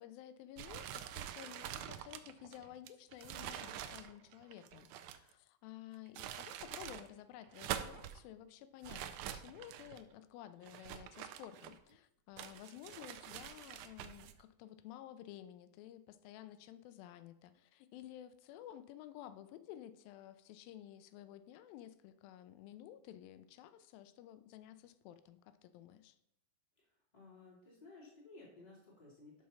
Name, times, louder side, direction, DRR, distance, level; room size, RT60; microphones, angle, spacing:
voice 1, 0.0-26.2, left 12 dB, 90° left, 12 dB, 2.3 m, -53 dB
sound 1, 0.6-5.3 5.9-7.1 7.4-8.2 8.8-10.0 10.6-11.9 12.4-14.3, right 11 dB, 80° right, 1.8 m, -46 dB
voice 2, 26.8-29.4, left 3 dB, 15° left, -5 dB, 2.2 m, -57 dB
6.2 x 5.9 x 5.5 m, 0.78 s
omnidirectional pair, 4.0 m